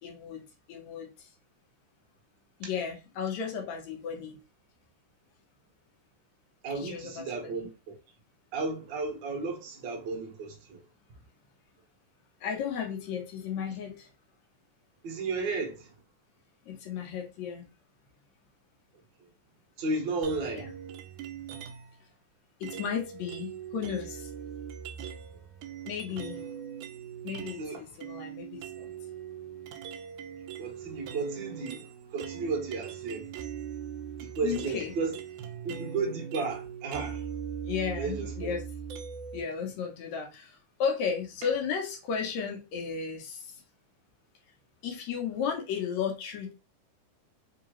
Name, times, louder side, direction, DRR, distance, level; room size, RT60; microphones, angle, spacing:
voice 1, 0.0-1.3 2.6-4.4 6.8-7.3 7.5-7.7 12.4-14.1 16.7-17.7 20.5-20.7 22.6-24.3 25.9-26.4 27.2-28.9 34.4-34.9 37.6-38.6 39.3-43.6 44.8-46.5, left 7 dB, 70° left, 1.9 m, -34 dB
voice 2, 6.6-7.9 8.5-10.8 15.0-15.9 19.8-20.7 26.1-26.2 27.6-27.8 30.6-33.3 34.2-35.2 35.6-37.2 37.9-38.5, right 3 dB, 55° right, 1.3 m, -33 dB
sound 1, 20.2-22.0 22.6-27.7 28.0-39.4, right 8 dB, 75° right, 1.9 m, -41 dB
4.7 x 2.8 x 3.0 m
omnidirectional pair, 3.6 m